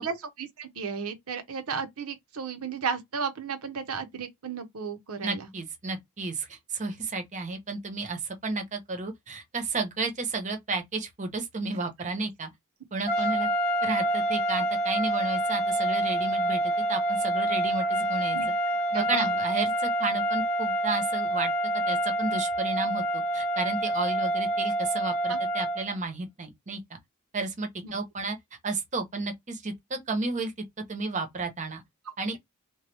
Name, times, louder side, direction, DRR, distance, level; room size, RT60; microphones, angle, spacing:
voice 1, 0.0-5.5 18.3-18.5 18.9-19.3 25.3-25.4 27.8-27.9, right 6 dB, 75° right, 0.8 m, -34 dB
voice 2, 5.2-12.5 12.9-13.5 13.8-18.4 18.9-21.5 21.9-26.8 27.3-28.4 28.6-30.5 30.9-31.8 32.2-32.4, right 3 dB, 35° right, 0.8 m, -32 dB
sound 1, 13.1-25.9, right 1 dB, 30° left, 0.8 m, -27 dB
2.9 x 2.2 x 3.3 m
head